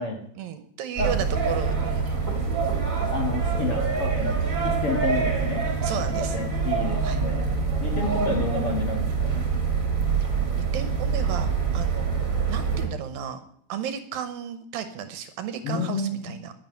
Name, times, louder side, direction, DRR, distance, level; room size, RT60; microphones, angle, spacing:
voice 1, 0.4-2.1 4.4-4.6 5.8-6.4 7.0-7.2 10.2-10.3 10.7-12.1 12.5-13.4 13.7-16.5, right 8 dB, 75° right, 9 dB, 2.5 m, -34 dB
sound 1, 1.0-12.9, right 5 dB, 25° right, 2.4 m, -25 dB
voice 2, 3.1-4.4 4.6-5.7 6.3-7.5 7.8-9.5 15.6-16.3, left 3 dB, 45° left, 1 dB, 2.2 m, -30 dB
11.0 x 10.0 x 9.4 m, 0.68 s
omnidirectional pair, 4.4 m